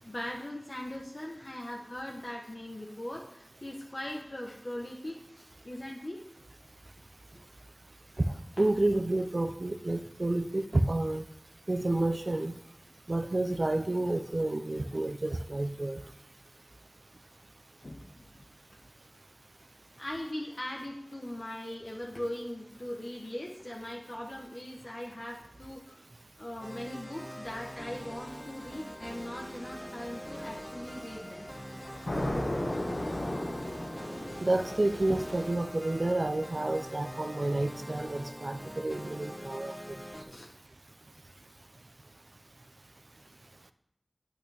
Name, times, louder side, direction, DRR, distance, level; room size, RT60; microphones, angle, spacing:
voice 1, 0.0-6.2 8.6-8.7 17.8-18.5 18.7-18.8 20.0-26.0 26.4-31.5 33.1-33.2 33.6-34.0 40.3-40.5, left 1 dB, 55° left, -1 dB, 1.1 m, -40 dB
voice 2, 8.6-11.2 11.7-12.6 13.1-16.0 34.4-39.8, right 2 dB, 65° right, 9 dB, 0.6 m, -30 dB
sound 1, 26.6-40.2, equal, ahead, 0.9 m, -44 dB
sound 2, 27.4-35.5, left 1 dB, 80° left, 1.4 m, -38 dB
8.6 x 8.5 x 3.5 m, 0.78 s
wide cardioid pair, 50°, 0 cm